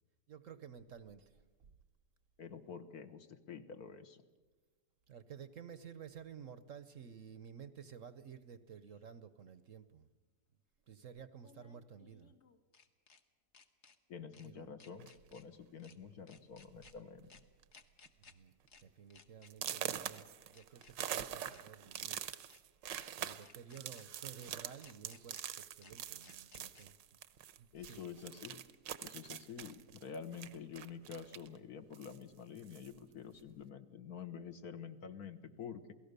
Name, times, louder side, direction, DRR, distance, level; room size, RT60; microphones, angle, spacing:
voice 1, 0.3-1.7 5.1-10.1 10.9-12.3 14.4-14.8 18.2-18.5 18.8-22.3 23.2-26.9 27.6-28.0, right 7 dB, 55° right, 13 dB, 1.1 m, -53 dB
voice 2, 2.4-4.2 14.1-17.3 27.7-28.6 29.0-35.9, left 6 dB, 60° left, 9 dB, 1.6 m, -48 dB
sound 1, 8.9-9.0 11.4-13.2 13.5-14.0 14.3-14.5 14.8-15.4 15.8-16.0 16.3-16.9 17.3-17.4 17.7-18.3 18.7-18.8 19.1-19.8 20.1-20.2 20.5-21.2 21.5-21.6 21.9-22.6 22.9-23.1 23.4-24.1 24.4-24.5 24.8-25.4 25.8-25.9 26.2-26.9, left 5 dB, 45° left, 1.4 m, -61 dB
sound 2, 15.0-15.3 16.1-16.2 16.6-16.9 17.2-17.6 18.1-18.2 18.7-18.8 19.5-27.6 27.8-31.6 31.9-33.0, right 10 dB, 80° right, 1.5 m, -44 dB
28.0 x 18.0 x 6.7 m, 1.3 s
omnidirectional pair, 1.9 m